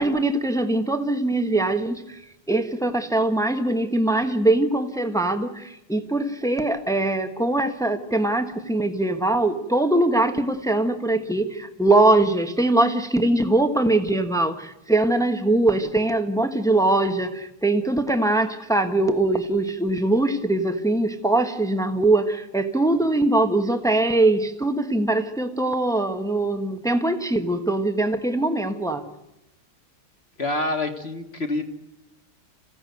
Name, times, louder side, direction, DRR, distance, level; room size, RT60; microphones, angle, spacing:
voice 1, 0.0-2.2 2.5-29.0, right 2 dB, ahead, 7 dB, 0.8 m, -22 dB
voice 2, 30.4-31.6, left 2 dB, 30° left, 6 dB, 1.7 m, -26 dB
28.0 x 16.0 x 9.3 m, 0.90 s
omnidirectional pair, 2.3 m